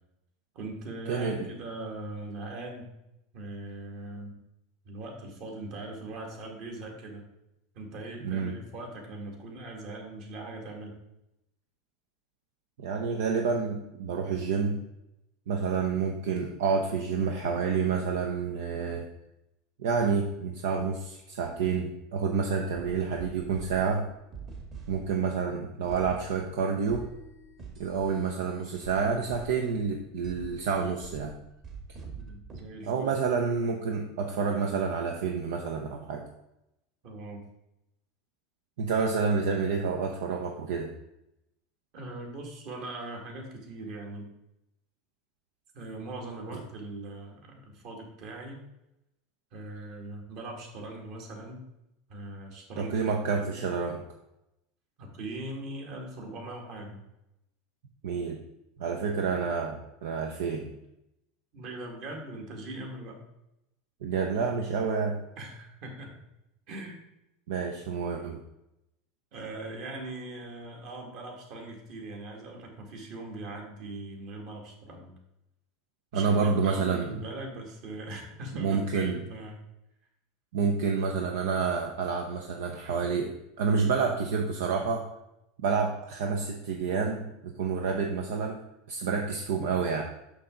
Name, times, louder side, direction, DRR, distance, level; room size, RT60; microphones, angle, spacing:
voice 1, 0.5-2.9 3.3-4.4 4.8-7.2 7.7-11.0 32.2-33.1 37.0-37.4 41.9-44.3 45.7-48.6 49.5-51.7 52.1-53.0 53.3-53.6 55.0-57.0 61.5-63.2 65.4-66.2 66.7-67.0 69.3-75.1 76.1-79.6, right 2 dB, 60° right, 1 dB, 2.1 m, -40 dB
voice 2, 1.1-1.4 8.2-8.5 12.8-14.8 15.5-19.1 19.8-24.1 24.9-27.1 27.8-31.3 32.9-36.2 38.8-40.9 52.8-54.0 58.0-58.4 58.8-60.7 64.0-65.2 67.5-68.4 76.1-77.1 78.5-79.2 80.5-85.1 85.6-88.6 88.9-90.0, right 5 dB, 80° right, 2 dB, 0.7 m, -29 dB
sound 1, 22.8-32.6, right 4 dB, 45° right, 1.6 m, -46 dB
6.3 x 5.8 x 3.8 m, 0.86 s
supercardioid pair, 110°, 0 cm